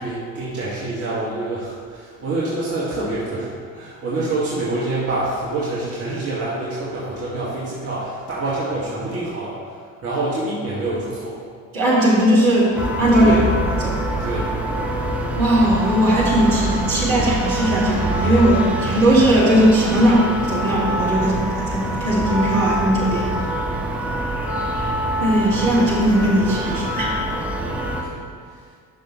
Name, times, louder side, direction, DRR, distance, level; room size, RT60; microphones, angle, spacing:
voice 1, 0.0-9.7 10.0-11.4 13.2-13.4 14.2-14.5 14.8-15.1 23.6-23.8 26.7-26.8 28.0-28.2, right 2 dB, 35° right, -7 dB, 1.7 m, -26 dB
voice 2, 11.7-13.4 13.8-14.0 15.4-23.3 24.7-24.9 25.2-27.1, right 1 dB, 75° right, -6 dB, 2.1 m, -18 dB
sound 1, 12.7-28.0, right 1 dB, 5° right, 1.1 m, -25 dB
10.5 x 6.1 x 3.0 m, 2.1 s
figure-of-eight pair, 50°, 42 cm